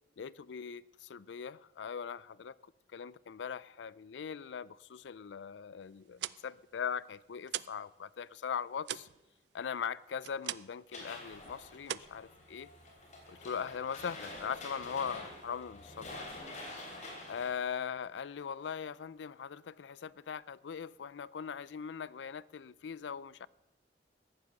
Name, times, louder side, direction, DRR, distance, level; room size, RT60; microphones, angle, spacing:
voice 1, 0.2-2.5 2.9-9.1 9.5-12.7 13.3-16.2 17.3-23.5, left 7 dB, 85° left, 0.4 m, -40 dB
sound 1, 6.0-7.9 8.2-10.9 11.2-11.5 11.8-12.9, right 12 dB, 70° right, 0.4 m, -42 dB
sound 2, 10.9-17.5, left 2 dB, 40° left, 3.4 m, -47 dB
14.5 x 9.7 x 6.5 m
head